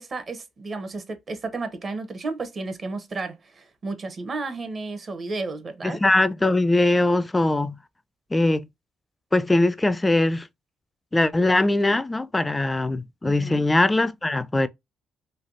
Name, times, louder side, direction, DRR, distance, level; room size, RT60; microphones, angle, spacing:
voice 1, 0.0-6.0 13.2-13.6, right 3 dB, 45° right, 0.8 m, -33 dB
voice 2, 5.8-7.8 8.3-8.7 9.3-10.5 11.1-14.7, left 2 dB, 15° left, 0.4 m, -21 dB
3.3 x 2.3 x 2.4 m
cardioid pair, 75°, 0 cm